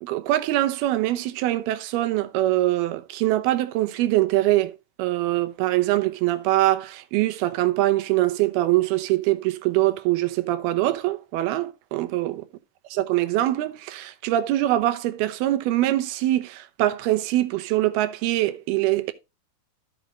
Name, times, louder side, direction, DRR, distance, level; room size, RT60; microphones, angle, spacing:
voice 1, 0.0-4.7 5.0-12.4 12.9-19.1, right 15 dB, 90° right, 2.8 m, -23 dB
14.0 x 5.1 x 3.1 m
omnidirectional pair, 4.3 m